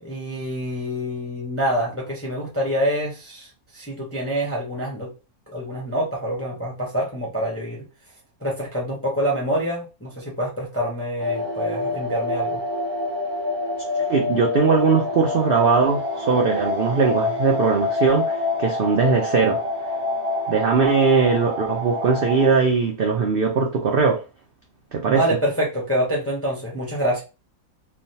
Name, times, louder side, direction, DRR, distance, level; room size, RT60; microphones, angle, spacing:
voice 1, 0.0-3.5 3.7-5.1 5.5-7.8 8.4-12.6 25.1-27.2, equal, 20° left, 0.4 m, -26 dB
sound 1, 11.2-22.5, left 2 dB, 50° right, 0.8 m, -27 dB
voice 2, 14.0-19.6 20.5-24.2 24.9-25.2, right 5 dB, 85° right, 0.5 m, -20 dB
3.2 x 2.2 x 2.7 m
omnidirectional pair, 1.6 m